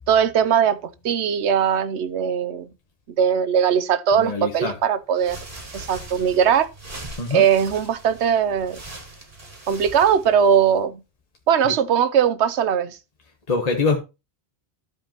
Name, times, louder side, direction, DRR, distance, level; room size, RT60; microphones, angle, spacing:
voice 1, 0.1-2.7 3.2-5.4 5.7-6.7 7.3-8.8 9.7-11.0 11.5-13.0, right 8 dB, 90° right, 1.0 m, -20 dB
voice 2, 4.1-4.8 7.2-7.5 11.6-11.7 13.5-14.0, left 4 dB, 35° left, 1.2 m, -24 dB
sound 1, 5.1-10.8, right 2 dB, 50° right, 2.1 m, -41 dB
14.0 x 5.1 x 2.9 m
omnidirectional pair, 1.1 m